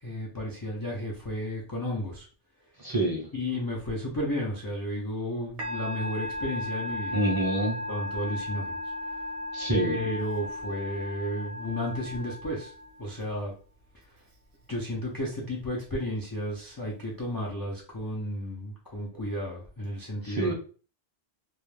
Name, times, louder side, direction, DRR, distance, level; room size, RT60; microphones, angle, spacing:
voice 1, 0.0-2.3 3.3-7.2 7.9-8.8 9.7-12.7 13.0-13.5 14.7-20.5, equal, 40° left, -3 dB, 0.3 m, -33 dB
voice 2, 2.8-3.3 7.1-7.8 9.5-10.0 20.2-20.5, right 1 dB, 25° right, -4 dB, 0.6 m, -27 dB
Musical instrument, 5.6-13.2, left 1 dB, 65° right, 0.8 m, -36 dB
2.3 x 2.1 x 3.1 m, 0.39 s
omnidirectional pair, 1.1 m